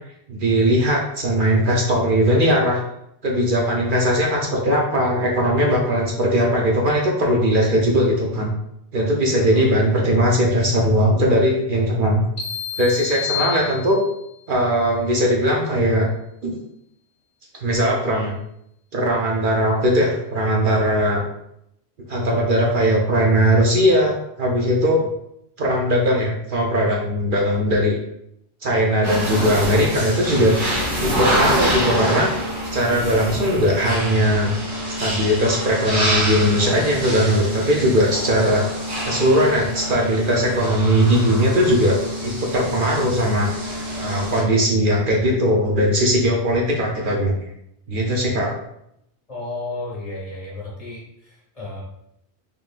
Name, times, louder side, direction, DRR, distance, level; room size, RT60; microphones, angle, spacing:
voice 1, 0.3-2.8 3.2-8.5 8.9-12.2 12.8-14.0 14.5-16.1 16.4-16.5 17.6-18.3 18.9-21.2 22.1-25.0 25.6-28.0 28.6-30.5 31.0-32.3 32.7-34.5 35.0-38.6 39.0-42.0 42.2-43.5 44.0-47.4 47.9-48.5, equal, 55° right, -1 dB, 0.8 m, -19 dB
sound 1, 12.4-14.3, left 10 dB, 70° left, 1.1 m, -29 dB
sound 2, 29.0-44.4, equal, 75° right, 1.5 m, -26 dB
voice 2, 49.3-51.9, left 2 dB, 35° left, -5 dB, 1.4 m, -33 dB
3.8 x 3.4 x 2.4 m, 0.78 s
omnidirectional pair, 1.1 m